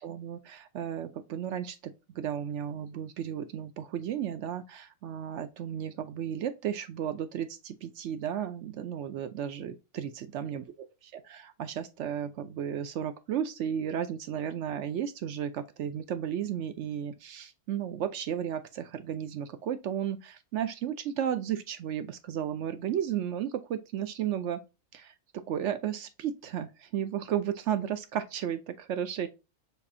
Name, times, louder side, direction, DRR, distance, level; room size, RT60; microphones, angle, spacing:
voice 1, 0.0-10.6 11.1-24.6 24.9-29.3, right 9 dB, 65° right, 0.7 m, -34 dB
6.6 x 2.5 x 2.5 m
omnidirectional pair, 1.5 m